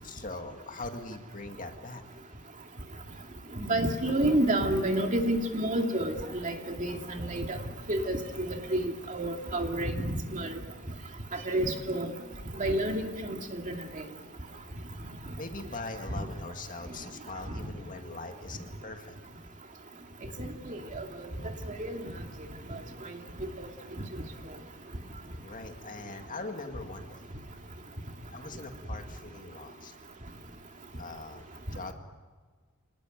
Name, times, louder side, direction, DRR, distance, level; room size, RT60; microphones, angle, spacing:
voice 1, 0.0-2.0 15.3-19.1 25.4-27.3 28.3-29.9 31.0-31.5 31.7-31.9, left 3 dB, 40° left, 5 dB, 2.1 m, -41 dB
voice 2, 3.6-6.1 6.4-7.6 7.9-8.5 8.7-10.5 11.3-12.1 12.6-13.8 20.4-21.1 21.8-22.0, right 1 dB, 35° right, 3 dB, 2.4 m, -29 dB
27.0 x 19.5 x 9.2 m, 1.5 s
head